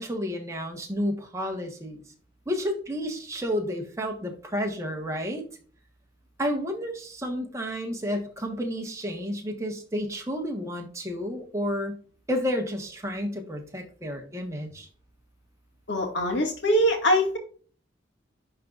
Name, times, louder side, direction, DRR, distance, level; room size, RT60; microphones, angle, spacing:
voice 1, 0.0-2.0 2.5-5.4 6.4-12.0 12.3-14.9, equal, 15° right, 2 dB, 1.4 m, -31 dB
voice 2, 15.9-17.4, equal, 70° left, 2 dB, 2.0 m, -23 dB
11.0 x 4.0 x 2.5 m, 0.42 s
head